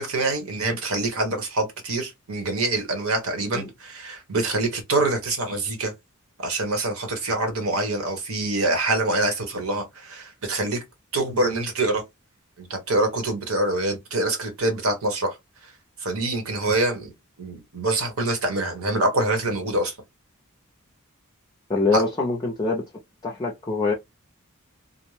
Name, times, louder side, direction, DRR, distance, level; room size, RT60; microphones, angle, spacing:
voice 1, 0.0-5.9 6.4-10.8 11.1-12.0 12.6-15.4 16.0-17.1 17.4-20.0 21.9-22.0, right 2 dB, 70° right, 1.0 m, -25 dB
voice 2, 21.7-22.8 23.2-23.9, left 3 dB, 20° left, 0.4 m, -24 dB
2.6 x 2.0 x 3.1 m
head